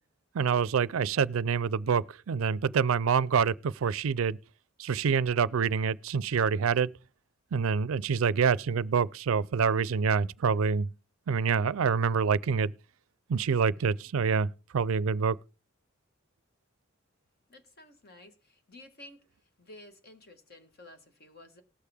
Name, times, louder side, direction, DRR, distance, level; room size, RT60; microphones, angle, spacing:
voice 1, 0.3-4.4 4.8-6.9 7.5-10.9 11.3-12.7 13.3-15.4, right 6 dB, 80° right, 0.4 m, -26 dB
voice 2, 17.5-19.3 19.6-21.6, left 1 dB, 50° left, 1.5 m, -52 dB
19.0 x 6.6 x 3.5 m
head